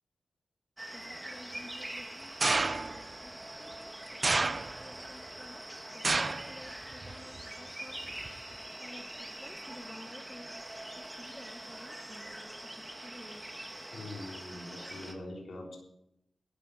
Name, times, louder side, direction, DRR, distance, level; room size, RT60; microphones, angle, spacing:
sound 1, 0.8-15.1, right 1 dB, 15° right, 2.3 m, -44 dB
voice 1, 0.9-4.0 4.3-8.0 8.8-10.5 11.0-13.5, left 1 dB, 15° left, 7 dB, 1.7 m, -52 dB
sound 2, 2.4-3.1 4.2-5.0 6.0-6.5 6.9-7.4 8.3-8.4, right 3 dB, 40° right, 0.6 m, -29 dB
voice 2, 13.9-15.8, left 2 dB, 70° left, -1 dB, 3.5 m, -43 dB
12.0 x 9.9 x 6.9 m, 0.82 s
cardioid pair, 55°, 0 cm